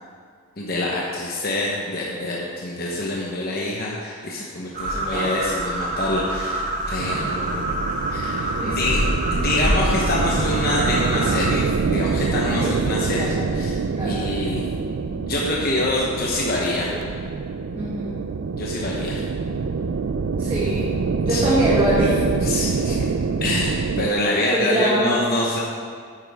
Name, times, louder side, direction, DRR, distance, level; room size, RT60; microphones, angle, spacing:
voice 1, 0.6-6.6 6.9-7.7 8.1-9.0 9.3-13.8 14.0-14.6 15.1-16.9 18.5-19.2 21.3-21.4 22.4-23.1 23.4-25.6, left 2 dB, 45° left, -4 dB, 1.0 m, -26 dB
sound 1, 4.7-11.5, right 1 dB, 40° right, 1.5 m, -26 dB
voice 2, 7.0-7.6 8.5-8.7 12.5-13.4 13.9-14.2 17.7-18.1 20.4-20.9 21.2-22.2 22.8-22.9 24.5-25.2, right 1 dB, 25° right, -9 dB, 1.7 m, -24 dB
sound 2, 7.0-24.1, right 4 dB, 65° right, 0.4 m, -25 dB
9.9 x 9.5 x 3.5 m, 2.1 s
head